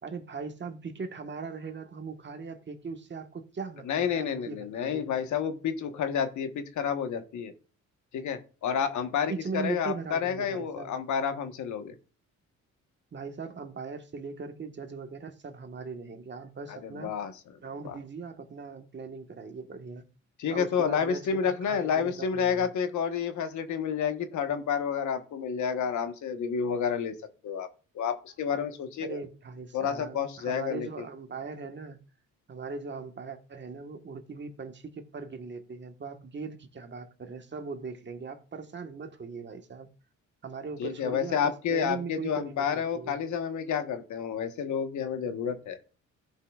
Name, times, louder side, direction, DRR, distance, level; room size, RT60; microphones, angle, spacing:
voice 1, 0.0-5.1 9.3-10.9 13.1-17.1 17.6-20.0 20.5-22.7 29.0-32.0 32.5-39.9 40.4-43.2, right 4 dB, 40° right, 1.4 m, -39 dB
voice 2, 3.8-7.5 8.1-11.9 16.7-17.3 17.8-18.0 20.4-27.1 27.4-27.7 27.9-29.2 29.7-31.0 40.8-45.8, left 7 dB, 70° left, 1.2 m, -30 dB
16.5 x 5.7 x 2.4 m
cardioid pair, 90°, 30 cm